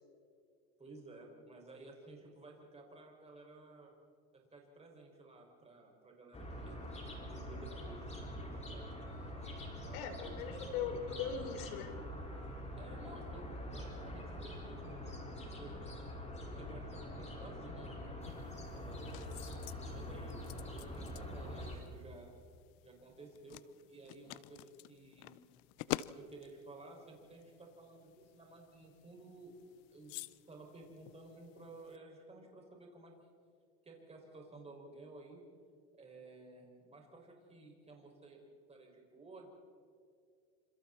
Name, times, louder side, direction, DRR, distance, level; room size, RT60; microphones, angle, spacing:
voice 1, 0.8-3.9 4.5-6.8 7.3-8.9 9.1-9.3 9.8-10.3 12.8-16.0 16.5-18.1 18.7-19.5 19.8-22.3 22.8-23.6 23.9-25.3 26.2-29.5 29.9-30.1 30.5-33.3 33.8-35.4 35.9-38.4 38.7-39.5, right 2 dB, 15° right, 0 dB, 6.1 m, -54 dB
sound 1, 6.3-21.8, left 1 dB, 15° left, 5.1 m, -45 dB
voice 2, 9.9-12.0, left 7 dB, 75° left, 6 dB, 3.9 m, -40 dB
sound 2, 18.2-32.0, left 17 dB, 60° left, 0.7 m, -49 dB
28.0 x 27.5 x 4.4 m, 2.2 s
supercardioid pair, 120°, 43 cm